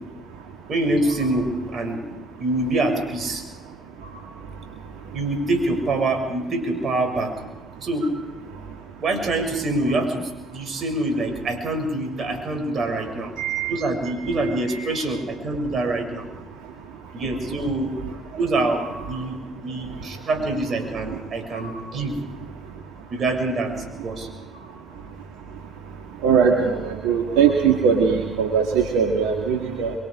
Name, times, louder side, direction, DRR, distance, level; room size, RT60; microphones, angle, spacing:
voice 1, 0.7-2.0 2.4-3.4 5.1-7.3 7.8-8.1 9.0-13.3 13.7-16.3 17.1-17.9 18.4-22.2 23.1-23.7 24.0-24.3, right 2 dB, 50° right, 5 dB, 6.9 m, -25 dB
voice 2, 13.4-13.7 26.2-29.9, right 6 dB, 80° right, 1 dB, 2.2 m, -20 dB
28.0 x 24.0 x 5.0 m, 1.0 s
hypercardioid pair, 50°, 0 cm